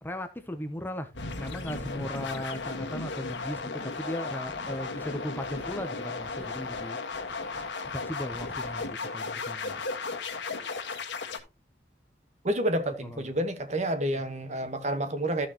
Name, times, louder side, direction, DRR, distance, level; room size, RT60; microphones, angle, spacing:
voice 1, 0.0-1.1 1.4-7.0 7.9-9.8 13.0-13.3 14.1-14.2, left 1 dB, 10° left, 0.7 m, -37 dB
sound 1, 1.1-11.4, left 4 dB, 80° left, 1.5 m, -35 dB
sound 2, 4.4-5.1 5.4-8.9, left 1 dB, 10° right, 3.5 m, -51 dB
voice 2, 12.4-15.5, right 1 dB, 40° right, 1.2 m, -29 dB
13.5 x 6.3 x 2.9 m
head